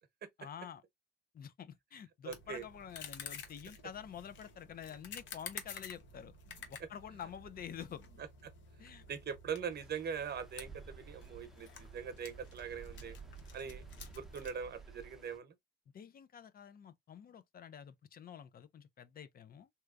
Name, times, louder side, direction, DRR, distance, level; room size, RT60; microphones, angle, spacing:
voice 1, 0.4-0.8 1.3-6.3 6.7-8.0 8.8-9.1 15.9-19.7, left 8 dB, 50° left, 0.5 m, -48 dB
voice 2, 2.2-2.6 9.1-13.2 13.5-13.9 14.1-15.5, right 7 dB, 55° right, 0.9 m, -42 dB
Vintage camera clicks and wind, 2.3-14.5, left 5 dB, 70° left, 1.0 m, -51 dB
Stream, 9.7-15.4, right 5 dB, ahead, 0.8 m, -54 dB
3.4 x 2.8 x 2.4 m
cardioid pair, 90°, 20 cm